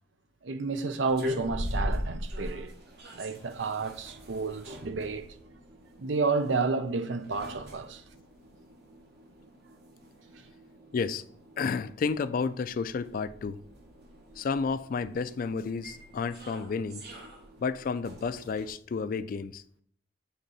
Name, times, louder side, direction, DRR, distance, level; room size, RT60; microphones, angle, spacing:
voice 1, 0.4-2.7 3.1-5.3 6.0-8.0 10.4-10.5, right 4 dB, 85° right, 0.6 m, -31 dB
sound 1, 1.0-18.7, equal, 60° right, 1.2 m, -41 dB
voice 2, 10.9-11.2 11.6-13.6 14.4-17.0 17.6-19.6, left 5 dB, 50° left, 0.3 m, -31 dB
7.8 x 3.7 x 4.0 m
head